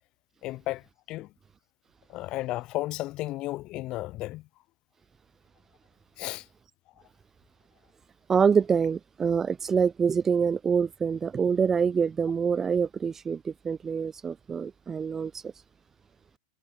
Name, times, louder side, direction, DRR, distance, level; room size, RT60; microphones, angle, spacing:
voice 1, 0.4-1.3 2.1-4.4 6.2-6.4, left 17 dB, 40° left, 1.5 m, -33 dB
voice 2, 8.3-15.5, right 6 dB, 15° right, 0.8 m, -26 dB
supercardioid pair, 145°, 2 cm